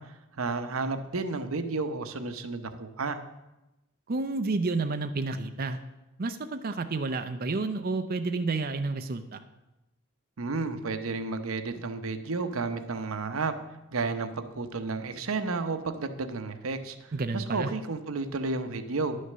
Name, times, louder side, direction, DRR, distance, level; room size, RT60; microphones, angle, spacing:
voice 1, 0.0-3.2 10.4-13.6 13.9-19.2, right 3 dB, 90° right, 9 dB, 0.8 m, -32 dB
voice 2, 4.1-5.8 6.2-9.4 17.1-17.7, right 3 dB, 45° right, 7 dB, 0.6 m, -30 dB
10.5 x 6.5 x 6.7 m, 0.97 s
head